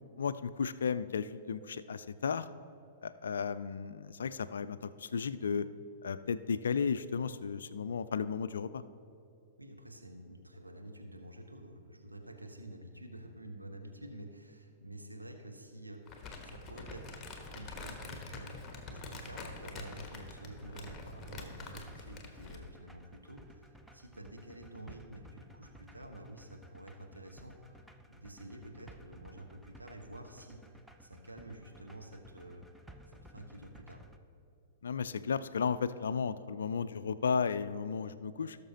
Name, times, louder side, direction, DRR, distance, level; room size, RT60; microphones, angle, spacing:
voice 1, 0.2-2.5 3.0-5.7 6.0-8.8 34.8-38.6, left 6 dB, 65° left, 14 dB, 0.3 m, -34 dB
voice 2, 9.6-17.3 17.5-18.5 18.8-23.6 23.9-27.8 28.1-30.6 31.0-32.7 33.2-34.0, right 1 dB, 85° right, 3 dB, 1.0 m, -49 dB
Crumpling crinkling, 16.1-22.7, left 3 dB, 20° left, 1.2 m, -46 dB
sound 1, 16.1-34.2, right 1 dB, 5° right, 0.5 m, -57 dB
17.0 x 6.6 x 2.8 m, 2.5 s
figure-of-eight pair, 105°, 0 cm